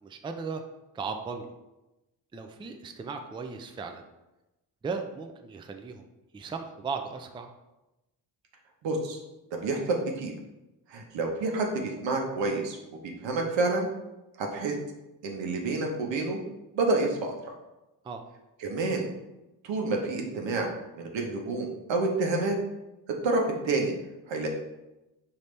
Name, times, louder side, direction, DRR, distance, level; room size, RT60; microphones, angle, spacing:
voice 1, 0.0-0.6 0.9-1.5 2.3-4.0 4.8-6.1 6.3-7.5 18.0-18.2, right 5 dB, 10° right, 5 dB, 0.3 m, -36 dB
voice 2, 8.8-9.2 9.6-10.3 10.9-12.8 13.0-13.9 14.4-14.7 15.2-16.4 16.7-17.5 18.6-19.1 19.6-20.7 21.0-22.6 23.2-23.9 24.3-24.5, right 3 dB, 80° right, 2 dB, 0.9 m, -28 dB
5.1 x 2.8 x 3.2 m, 0.99 s
cardioid pair, 70°, 44 cm